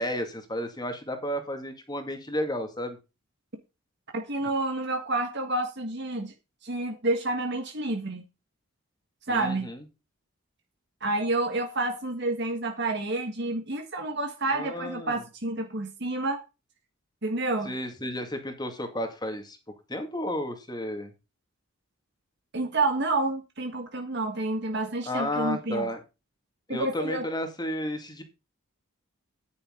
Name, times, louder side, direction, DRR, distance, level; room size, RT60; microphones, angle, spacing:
voice 1, 0.0-3.0 9.3-9.8 14.5-15.2 17.6-19.6 19.9-21.1 25.1-26.0 26.7-28.2, equal, 20° left, 6 dB, 2.2 m, -32 dB
voice 2, 4.1-6.3 6.6-8.2 9.3-9.7 11.0-16.4 17.2-17.7 22.5-25.9 26.7-27.2, right 2 dB, 50° right, 4 dB, 1.6 m, -29 dB
10.0 x 9.5 x 3.8 m, 0.28 s
head